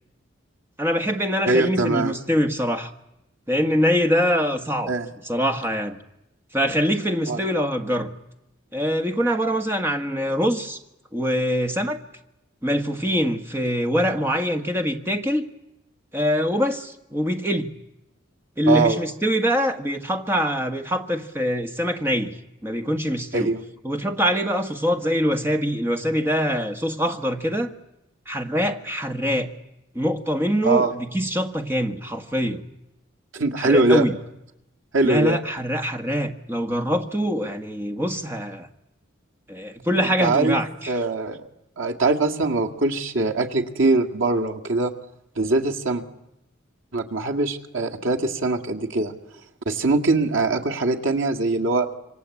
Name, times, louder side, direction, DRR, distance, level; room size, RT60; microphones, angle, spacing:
voice 1, 0.8-2.9 3.5-4.9 5.2-6.0 6.5-8.1 8.7-10.8 11.1-12.0 12.6-15.4 16.1-17.7 18.6-22.3 22.6-23.5 23.8-27.7 28.3-29.5 29.9-32.6 33.6-34.1 35.0-38.7 39.5-41.0, equal, 10° right, 5 dB, 1.5 m, -24 dB
voice 2, 1.5-2.1 4.9-5.1 7.3-7.4 18.7-19.0 23.3-23.6 30.6-30.9 33.3-34.0 34.9-35.4 40.2-41.4 41.8-44.9 45.4-46.0 46.9-49.1 49.7-51.9, right 3 dB, 80° right, 2 dB, 2.1 m, -22 dB
27.0 x 24.5 x 8.5 m, 0.88 s
head